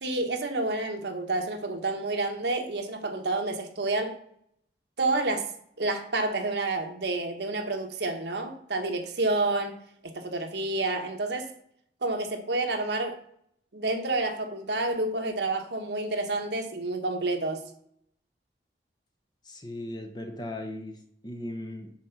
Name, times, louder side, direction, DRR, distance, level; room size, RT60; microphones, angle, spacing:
voice 1, 0.0-4.2 5.0-5.5 5.8-9.7 10.0-11.5 12.0-13.2 13.7-17.6, right 2 dB, 75° right, 5 dB, 1.2 m, -29 dB
voice 2, 19.4-21.9, left 1 dB, 25° left, 4 dB, 0.9 m, -38 dB
7.4 x 4.3 x 5.9 m, 0.67 s
head